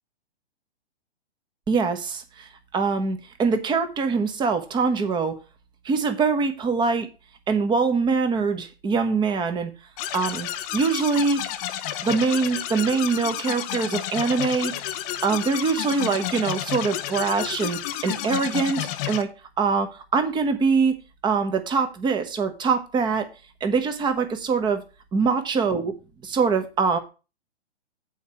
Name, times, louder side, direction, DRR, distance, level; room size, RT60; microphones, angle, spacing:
voice 1, 1.7-5.3 5.8-7.1 7.5-9.7 10.1-11.4 12.0-14.7 15.2-19.3 19.6-21.0 21.2-23.3 23.6-24.8 25.1-25.9 26.2-27.0, right 4 dB, 15° right, 8 dB, 1.0 m, -23 dB
sound 1, 10.0-19.2, left 12 dB, 15° left, 0.4 m, -31 dB
8.3 x 4.5 x 5.9 m, 0.31 s
hypercardioid pair, 130°, 33 cm